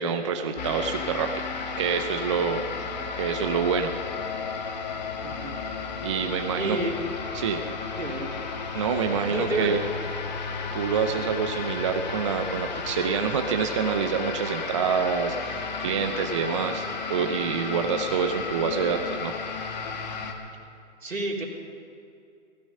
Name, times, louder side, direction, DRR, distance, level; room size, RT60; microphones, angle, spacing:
voice 1, 0.0-1.5 1.8-2.6 3.1-3.9 6.0-6.8 7.3-7.6 8.7-9.8 10.7-19.3, right 6 dB, 25° right, 6 dB, 0.7 m, -27 dB
sound 1, 0.6-20.3, left 5 dB, 35° left, 1.6 m, -33 dB
voice 2, 5.2-5.6 6.5-7.0 7.9-8.3 9.3-9.8 11.0-11.3 21.0-21.4, right 3 dB, 90° right, -1 dB, 3.8 m, -30 dB
16.0 x 15.5 x 5.5 m, 2.5 s
hypercardioid pair, 150°, 38 cm